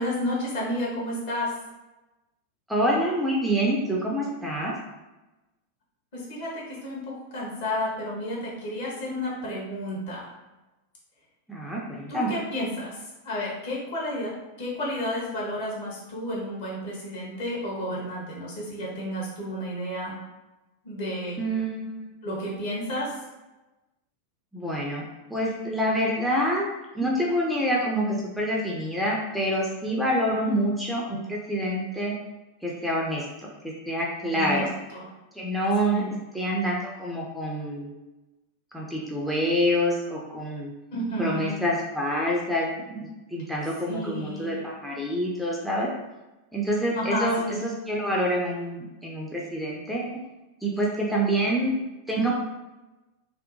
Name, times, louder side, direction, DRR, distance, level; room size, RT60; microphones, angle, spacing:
voice 1, 0.0-1.5 6.1-10.3 12.1-12.9 13.2-14.3 14.6-20.1 20.8-21.4 22.2-23.1 30.3-30.5 34.3-34.6 34.9-35.0 35.8-36.1 40.9-41.6 43.9-44.6 46.9-47.6, left 1 dB, 55° left, -5 dB, 1.0 m, -31 dB
voice 2, 2.7-4.7 11.5-12.3 21.4-22.1 24.5-26.7 26.9-32.1 32.6-34.7 35.3-37.9 38.7-40.7 41.2-45.9 46.5-50.1 50.6-51.7 52.1-52.3, equal, ahead, -4 dB, 0.4 m, -27 dB
2.7 x 2.1 x 2.6 m, 1.1 s
figure-of-eight pair, 90°, 0 cm